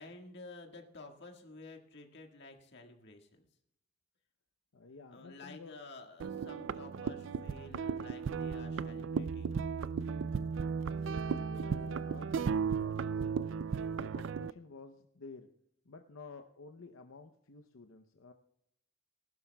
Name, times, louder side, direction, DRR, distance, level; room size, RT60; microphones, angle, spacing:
voice 1, 0.0-3.5 5.1-9.5, left 3 dB, 60° left, 3 dB, 1.7 m, -51 dB
voice 2, 4.7-5.7 6.8-7.2 10.4-10.6 11.0-13.5 14.0-15.5 15.9-18.3, left 4 dB, 85° left, 6 dB, 0.7 m, -52 dB
sound 1, 6.2-14.5, right 6 dB, 70° right, 0.4 m, -35 dB
19.5 x 12.0 x 2.3 m, 0.78 s
head